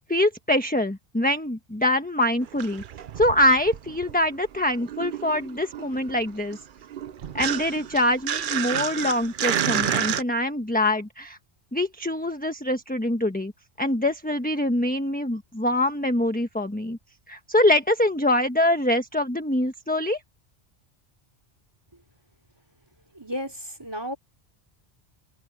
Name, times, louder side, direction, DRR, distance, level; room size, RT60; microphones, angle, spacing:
voice 1, 0.1-2.8 3.2-6.6 7.3-11.4 11.7-13.5 13.8-17.0 17.3-20.2, left 1 dB, 10° left, 1.2 m, -24 dB
sound 1, 2.4-4.3 4.6-10.2, right 9 dB, 55° right, 0.8 m, -30 dB
voice 2, 23.1-24.2, equal, 25° right, 3.5 m, -33 dB
omnidirectional pair, 1.1 m